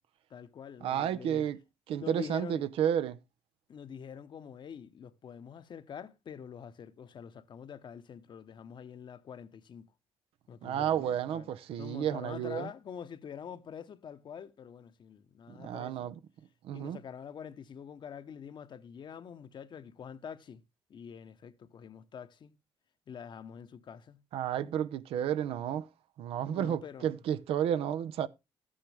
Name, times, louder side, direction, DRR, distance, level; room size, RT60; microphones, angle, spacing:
voice 1, 0.3-1.5 1.9-2.6 3.7-9.9 10.5-11.5 11.8-16.1 16.7-20.6 20.9-22.5 23.1-24.2 26.5-27.1, left 7 dB, 55° left, 1.0 m, -46 dB
voice 2, 0.8-1.6 1.9-3.2 10.6-12.7 15.5-16.1 16.6-17.0 24.3-25.9 26.2-28.3, right 10 dB, 80° right, 0.7 m, -31 dB
13.0 x 8.8 x 3.4 m
cardioid pair, 85°, 10 cm